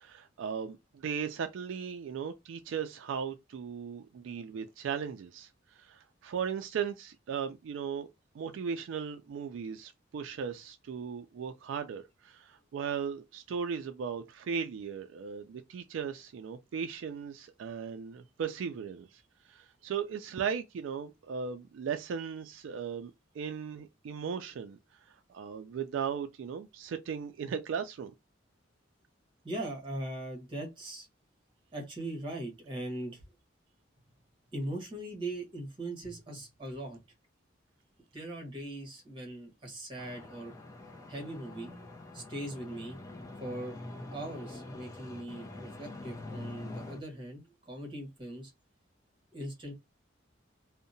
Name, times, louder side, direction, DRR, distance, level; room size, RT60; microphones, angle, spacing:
voice 1, 0.0-5.5 5.7-8.1 8.3-19.2 19.5-24.8 25.1-28.1, right 7 dB, 75° right, 0.3 m, -37 dB
voice 2, 29.4-31.1 31.7-33.2 34.5-37.0 38.1-40.5 41.1-41.7 42.1-43.0 43.4-43.8 44.1-48.5 49.3-49.7, right 1 dB, 25° right, 1.1 m, -40 dB
sound 1, 40.0-47.0, left 2 dB, 15° left, 0.4 m, -45 dB
2.7 x 2.1 x 2.6 m
head